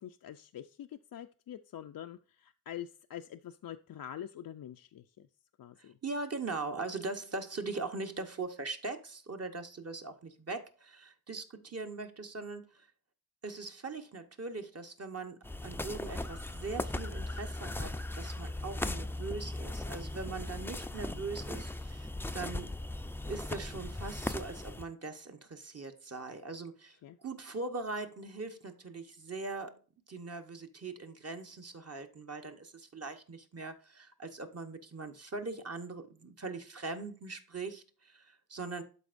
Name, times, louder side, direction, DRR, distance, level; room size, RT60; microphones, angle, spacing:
voice 1, 0.0-5.3 5.6-6.0 27.0-27.2, left 10 dB, 65° left, 0.5 m, -45 dB
voice 2, 5.8-12.9 13.4-22.7 23.2-29.8 30.1-38.8, right 3 dB, 40° right, 1.0 m, -41 dB
sound 1, 15.4-24.8, left 2 dB, 5° left, 0.5 m, -38 dB
12.5 x 4.2 x 2.5 m
wide cardioid pair, 95°, 37 cm